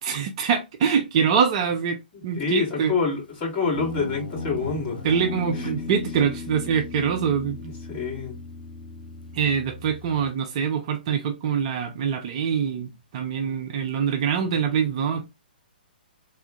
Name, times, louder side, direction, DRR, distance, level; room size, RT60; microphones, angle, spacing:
voice 1, 0.0-2.9 5.0-7.6 9.3-15.3, right 7 dB, 35° right, 0.5 m, -24 dB
voice 2, 2.4-5.0 5.5-5.7 7.6-8.4, left 4 dB, 25° left, 2.3 m, -27 dB
Guitar, 3.7-10.3, left 4 dB, 65° left, 0.9 m, -36 dB
3.5 x 2.2 x 3.7 m
figure-of-eight pair, 125°, 5 cm